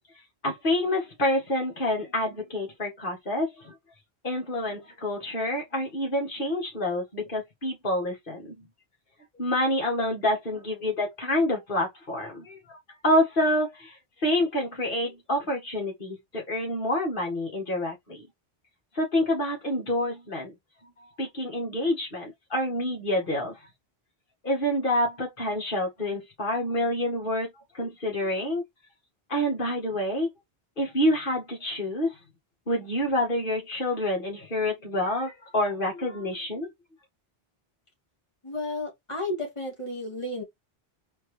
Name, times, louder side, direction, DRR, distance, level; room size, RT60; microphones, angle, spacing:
voice 1, 0.4-3.7 4.2-8.6 9.4-12.8 13.0-13.9 14.2-18.3 19.0-20.5 21.2-23.6 24.4-28.6 29.3-30.3 30.8-32.1 32.7-36.7, left 1 dB, 55° left, 1.9 m, -27 dB
voice 2, 38.4-40.4, left 2 dB, 30° left, 1.5 m, -32 dB
4.4 x 2.8 x 3.2 m
omnidirectional pair, 1.1 m